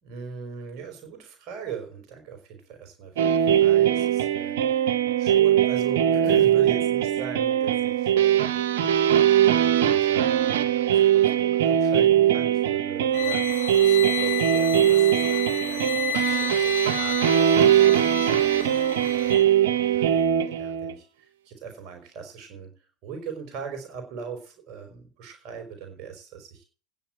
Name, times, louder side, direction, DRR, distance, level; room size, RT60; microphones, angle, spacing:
voice 1, 0.0-3.2 3.5-4.9 5.2-8.6 9.2-13.4 13.8-18.8 19.1-19.6 19.9-26.6, right 6 dB, 55° right, 4 dB, 4.8 m, -40 dB
sound 1, 3.2-20.9, right 10 dB, 80° right, 1.4 m, -21 dB
sound 2, 13.1-19.5, left 10 dB, 75° left, 2.0 m, -32 dB
10.0 x 7.2 x 9.0 m, 0.38 s
hypercardioid pair, 100°, 0 cm